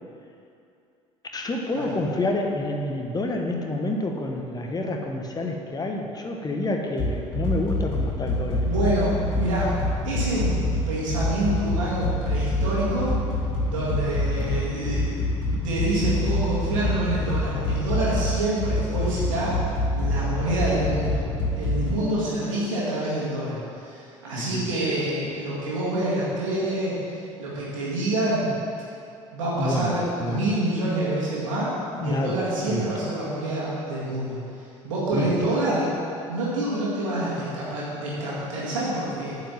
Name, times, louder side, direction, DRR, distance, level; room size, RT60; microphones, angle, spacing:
voice 1, 1.3-8.7 24.4-24.7 29.6-29.9 30.2-30.4 31.9-32.4 32.7-32.8 35.1-35.3, left 2 dB, 25° left, 2 dB, 1.3 m, -28 dB
sound 1, 7.0-21.9, left 1 dB, 60° left, 2.4 m, -26 dB
voice 2, 8.6-9.7 10.0-13.2 13.6-15.1 15.5-19.6 19.9-21.2 21.5-28.5 29.3-35.9 36.3-39.4, right 1 dB, 70° right, -8 dB, 2.0 m, -27 dB
9.0 x 5.1 x 7.3 m, 2.6 s
figure-of-eight pair, 60°, 17 cm